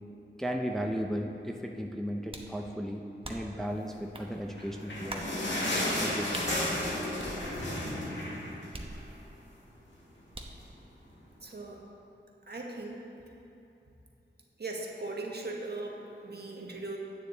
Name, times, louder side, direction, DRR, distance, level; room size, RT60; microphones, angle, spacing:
voice 1, 0.4-5.5 6.0-6.5, equal, ahead, 1 dB, 0.6 m, -35 dB
sound 1, 2.3-2.6 3.2-3.6 4.1-4.3 5.1-5.4 6.3-6.5 7.2-7.8 8.7-9.4 10.3-10.7, right 1 dB, 30° right, 0.9 m, -43 dB
sound 2, 4.4-9.2 9.5-9.6 9.9-10.1 10.8-10.9, left 1 dB, 75° left, 1.8 m, -33 dB
voice 2, 11.4-11.8 12.5-13.0 14.6-17.0, right 2 dB, 55° right, 0 dB, 1.3 m, -39 dB
9.3 x 9.2 x 4.0 m, 2.9 s
wide cardioid pair, 65°, 19 cm